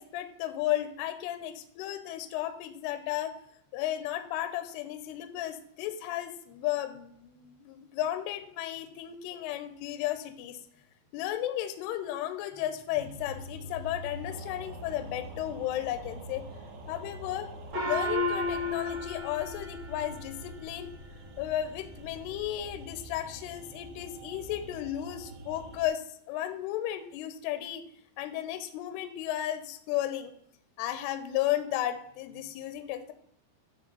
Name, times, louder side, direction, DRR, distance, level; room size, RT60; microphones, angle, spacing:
voice 1, 0.0-3.3 3.7-10.6 11.1-16.4 16.9-17.5 17.9-20.9 21.4-27.8 28.2-30.3 30.8-33.1, left 12 dB, 80° left, 10 dB, 2.5 m, -34 dB
sound 1, 13.0-25.9, equal, 80° right, 3.0 m, -45 dB
sound 2, 14.3-19.1, right 4 dB, 60° right, 3.6 m, -50 dB
Gong, 17.7-20.6, left 2 dB, 40° right, 1.9 m, -33 dB
9.6 x 3.3 x 5.2 m, 0.70 s
omnidirectional pair, 5.0 m